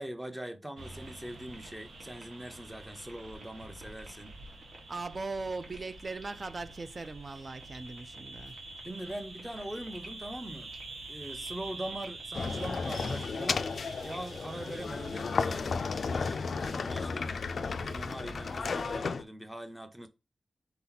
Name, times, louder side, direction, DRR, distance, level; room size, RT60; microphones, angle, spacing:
voice 1, 0.0-4.3 8.8-10.7 11.1-13.7 14.0-17.3 17.8-20.1, right 1 dB, 10° right, 0.7 m, -42 dB
sound 1, 0.8-15.7, right 2 dB, 70° right, 1.4 m, -57 dB
sound 2, 0.8-19.0, right 2 dB, 90° right, 0.9 m, -47 dB
voice 2, 4.9-8.6, right 3 dB, 40° right, 0.4 m, -39 dB
sound 3, 12.3-19.2, left 5 dB, 65° left, 0.3 m, -33 dB
4.2 x 2.9 x 3.9 m
wide cardioid pair, 120°, 0 cm